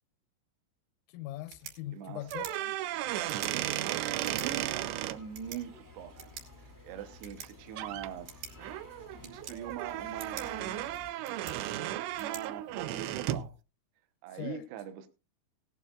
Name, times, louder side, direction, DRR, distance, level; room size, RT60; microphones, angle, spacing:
voice 1, 1.1-2.8 14.3-14.7, left 15 dB, 90° left, 3.4 m, -41 dB
sound 1, 1.3-13.3, right 7 dB, 50° right, 3.6 m, -50 dB
voice 2, 1.9-2.2 3.1-6.2 6.8-8.3 9.1-10.9 12.1-13.5 14.2-15.1, right 9 dB, 75° right, 2.6 m, -42 dB
sound 2, 2.2-5.2 7.3-7.5 7.8-8.1 8.6-13.5, right 13 dB, 90° right, 2.4 m, -35 dB
sound 3, 4.2-11.1, left 3 dB, 35° right, 0.3 m, -53 dB
18.0 x 12.0 x 2.4 m
omnidirectional pair, 5.8 m